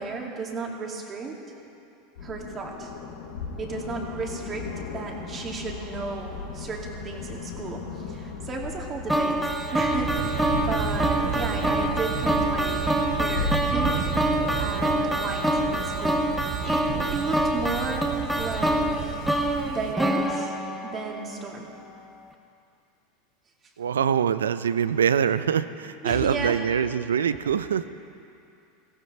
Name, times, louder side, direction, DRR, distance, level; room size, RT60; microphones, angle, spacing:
voice 1, 0.0-1.4 2.2-2.9 3.6-9.4 9.7-14.1 14.5-19.3 19.6-20.5 20.8-21.7 26.0-26.6, right 4 dB, 30° right, 0 dB, 2.4 m, -34 dB
sound 1, 2.2-15.6, left 5 dB, 75° left, 2.3 m, -37 dB
sound 2, 9.1-21.3, right 1 dB, 5° right, 1.3 m, -26 dB
Thunder, 9.9-20.0, right 8 dB, 65° right, 1.3 m, -32 dB
voice 2, 23.8-27.9, right 8 dB, 85° right, 14 dB, 0.5 m, -24 dB
17.0 x 15.0 x 4.3 m, 2.6 s
hypercardioid pair, 90°, 0 cm